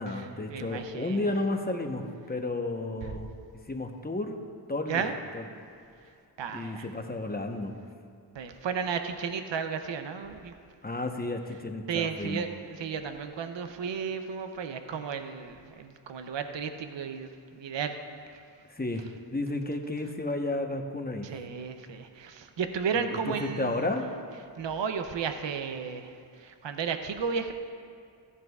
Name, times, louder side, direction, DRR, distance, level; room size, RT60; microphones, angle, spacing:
voice 1, 0.0-3.3 3.7-4.4 4.7-5.5 6.5-7.7 10.8-12.4 18.6-19.0 19.3-21.3 22.9-24.1, left 2 dB, 20° left, 4 dB, 0.9 m, -32 dB
voice 2, 0.5-1.2 4.9-5.1 6.4-6.9 8.3-10.5 11.9-17.3 17.6-17.9 21.2-23.9 24.6-26.1 26.4-27.5, right 6 dB, 75° right, 7 dB, 0.7 m, -33 dB
15.0 x 11.0 x 2.4 m, 2.3 s
cardioid pair, 50°, 45 cm